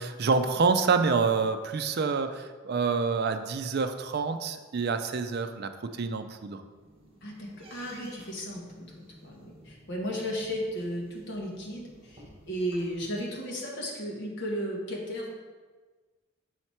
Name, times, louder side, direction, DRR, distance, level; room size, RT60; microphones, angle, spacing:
voice 1, 0.0-6.6, right 4 dB, 55° right, 8 dB, 0.4 m, -27 dB
sound 1, 6.5-13.0, right 1 dB, 30° right, 1.2 m, -54 dB
voice 2, 7.2-15.3, equal, 60° left, -2 dB, 1.4 m, -35 dB
6.4 x 4.6 x 4.3 m, 1.4 s
head